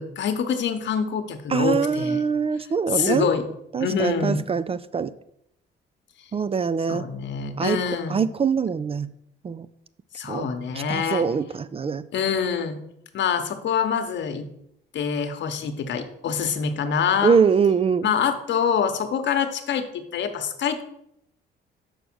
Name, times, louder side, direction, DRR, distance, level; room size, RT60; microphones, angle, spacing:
voice 1, 0.0-2.2 2.9-3.4 3.8-4.4 6.9-8.2 10.1-11.3 12.1-12.8 13.1-14.5 14.9-17.4 18.0-20.8, left 7 dB, 65° left, 7 dB, 1.0 m, -25 dB
voice 2, 1.5-3.3 3.7-5.1 6.3-7.1 7.6-7.8 8.1-9.1 9.4-9.7 10.3-10.5 10.9-12.0 17.2-18.1, right 6 dB, 30° right, 15 dB, 0.4 m, -23 dB
6.7 x 4.8 x 6.1 m, 0.75 s
cardioid pair, 90°, 20 cm